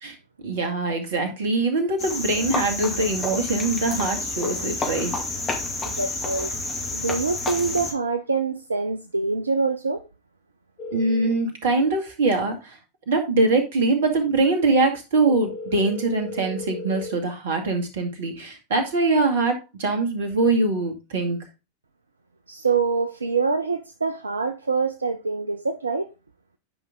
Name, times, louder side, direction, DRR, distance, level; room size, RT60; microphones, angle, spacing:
voice 1, 0.4-5.1 10.9-12.8 13.1-21.4, right 3 dB, 55° right, 2.2 m, -23 dB
Cricket, 2.0-7.9, left 3 dB, 20° left, 2.3 m, -29 dB
voice 2, 5.8-10.0 22.5-26.1, right 4 dB, 80° right, 0.5 m, -25 dB
sound 1, 10.8-11.3 15.3-17.1, left 2 dB, 40° left, 2.3 m, -35 dB
10.0 x 5.4 x 3.7 m
figure-of-eight pair, 90°, 0 cm